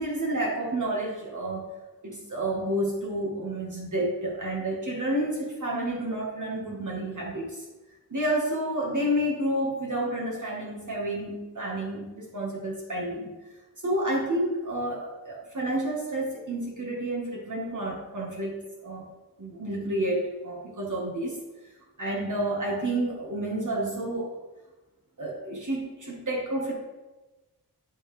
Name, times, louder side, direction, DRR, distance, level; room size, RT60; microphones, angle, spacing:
voice 1, 0.0-1.7 2.0-7.6 8.1-13.3 13.8-19.0 19.4-21.4 22.0-24.3 25.2-26.7, right 1 dB, 50° right, -3 dB, 1.5 m, -30 dB
11.0 x 4.0 x 3.3 m, 1.1 s
wide cardioid pair, 80°, 39 cm